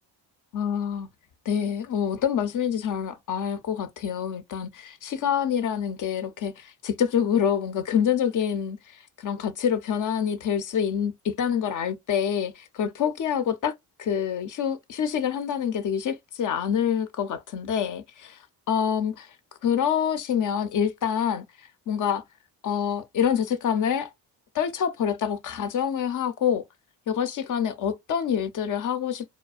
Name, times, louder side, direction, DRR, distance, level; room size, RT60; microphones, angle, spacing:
voice 1, 0.5-1.1 1.5-13.7 14.0-18.4 18.7-19.3 19.6-22.2 22.6-24.1 24.5-26.6 27.1-29.2, left 8 dB, 50° left, 0.6 m, -26 dB
2.4 x 2.1 x 2.4 m
cardioid pair, 90°, 41 cm